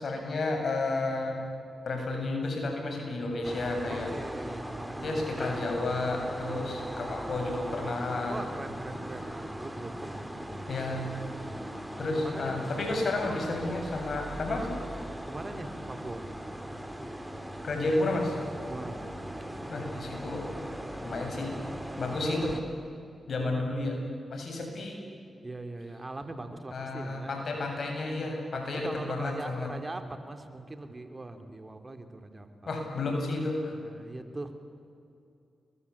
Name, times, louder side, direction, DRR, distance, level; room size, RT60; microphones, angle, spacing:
voice 1, 0.0-1.4 1.8-4.1 5.0-8.4 10.7-11.1 12.0-14.7 17.6-18.3 19.7-20.5 21.0-21.6 22.0-22.6 23.3-24.0 24.3-25.0 26.7-29.7 32.7-33.7, left 2 dB, 65° left, 2 dB, 7.9 m, -31 dB
sound 1, 3.4-22.6, equal, 10° right, 4.2 m, -39 dB
voice 2, 3.9-5.3 6.4-7.4 8.3-11.8 12.2-12.7 15.2-16.3 18.7-19.8 23.4-23.7 25.4-27.6 28.6-32.5 33.7-34.5, right 2 dB, 30° right, 7 dB, 3.2 m, -42 dB
29.0 x 22.5 x 8.7 m, 2.5 s
supercardioid pair, 40°, 0 cm